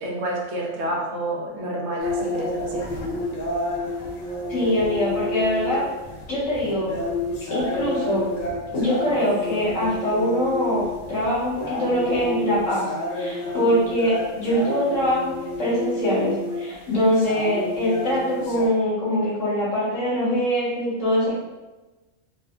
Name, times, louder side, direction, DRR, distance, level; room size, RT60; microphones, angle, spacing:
voice 1, 0.0-2.9, right 1 dB, 65° right, -3 dB, 0.9 m, -29 dB
sound 1, 2.0-18.7, left 2 dB, 55° left, 0.8 m, -30 dB
voice 2, 4.5-5.8 6.3-6.9 7.5-8.3 8.7-21.3, equal, 80° left, -9 dB, 1.7 m, -23 dB
4.0 x 2.2 x 2.4 m, 1.1 s
omnidirectional pair, 1.3 m